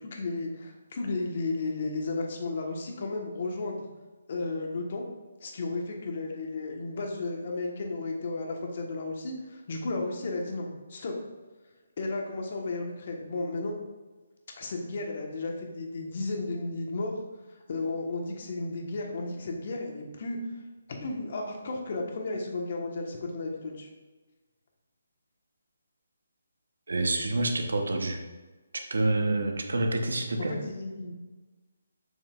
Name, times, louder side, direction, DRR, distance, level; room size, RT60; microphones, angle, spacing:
voice 1, 0.0-3.8 4.3-5.0 5.4-11.1 12.0-13.8 14.6-17.1 17.7-20.4 20.9-23.9 30.4-31.2, left 3 dB, 50° left, 1 dB, 1.3 m, -33 dB
voice 2, 26.9-28.2 28.9-30.6, right 2 dB, 85° right, 4 dB, 1.0 m, -27 dB
7.2 x 6.4 x 2.5 m, 1.2 s
hypercardioid pair, 155°, 0 cm